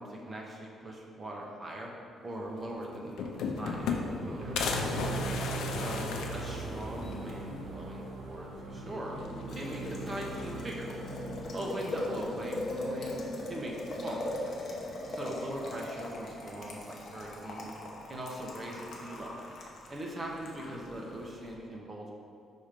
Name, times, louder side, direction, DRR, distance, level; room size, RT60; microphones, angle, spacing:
voice 1, 0.0-1.9 2.2-4.7 5.6-9.2 9.5-10.9 11.5-13.2 13.5-13.7 14.0-14.3 15.1-17.7 18.1-19.4 19.9-22.1, right 1 dB, 20° right, -1 dB, 1.0 m, -41 dB
sound 1, 2.6-2.7 2.9-4.2 4.6-7.2 7.6-7.7 7.9-8.0 9.2-9.7 10.0-10.8 11.8-12.4, left 5 dB, 85° left, 0.6 m, -35 dB
Boiling, 3.6-21.5, left 1 dB, 50° left, 1.0 m, -40 dB
sound 2, 4.2-14.3, right 4 dB, 80° right, 0.6 m, -42 dB
5.6 x 4.4 x 5.2 m, 2.5 s
cardioid pair, 155°, 0 cm